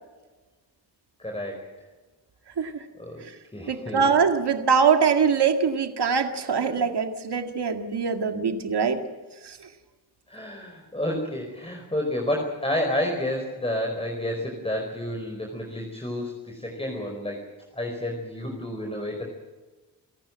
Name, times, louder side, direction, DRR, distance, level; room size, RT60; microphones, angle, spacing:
voice 1, 1.2-1.7 3.0-4.1 10.3-17.5 17.7-19.2, left 1 dB, 15° left, 1 dB, 4.8 m, -30 dB
voice 2, 3.7-9.0 9.4-9.7, right 6 dB, 75° right, 6 dB, 2.2 m, -23 dB
28.0 x 15.0 x 7.6 m, 1.2 s
cardioid pair, 75°, 41 cm